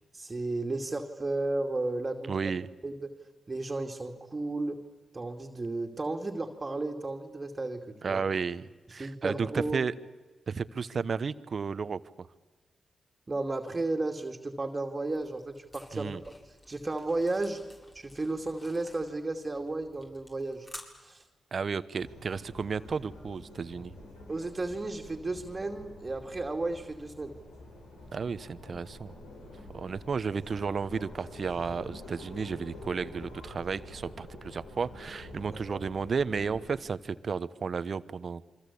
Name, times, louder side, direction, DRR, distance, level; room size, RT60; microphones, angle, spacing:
voice 1, 0.1-2.4 2.8-3.1 3.5-4.8 5.1-8.2 8.9-9.8 13.3-16.2 16.7-17.6 17.9-20.7 21.0-21.2 24.3-27.4 35.5-35.8, right 2 dB, 35° right, 4 dB, 2.5 m, -33 dB
voice 2, 2.3-2.7 8.0-9.9 10.5-12.3 15.9-16.2 21.5-23.9 28.1-29.1 29.7-38.5, right 5 dB, 55° right, 15 dB, 1.1 m, -33 dB
sound 1, 15.1-20.8, left 1 dB, 30° left, 7.4 m, -52 dB
sound 2, 22.0-36.8, left 1 dB, 85° left, 7.2 m, -47 dB
28.0 x 24.5 x 8.6 m, 1.2 s
supercardioid pair, 40°, 0 cm